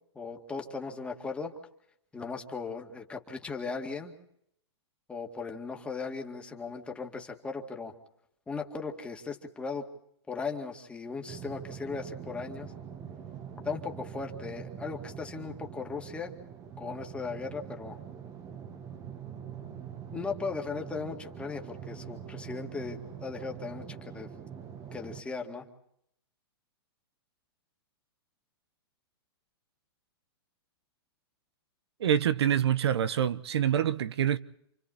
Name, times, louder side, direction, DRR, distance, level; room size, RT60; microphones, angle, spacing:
voice 1, 0.2-1.5 2.1-4.2 5.1-7.9 8.5-9.9 10.3-12.7 13.6-16.3 16.8-18.0 20.1-24.3 24.9-25.7, left 4 dB, 10° left, 2.2 m, -37 dB
sound 1, 11.3-25.2, right 8 dB, 25° right, 1.4 m, -44 dB
voice 2, 32.0-34.4, right 9 dB, 75° right, 1.0 m, -26 dB
29.0 x 25.0 x 4.2 m
hypercardioid pair, 150°, 14 cm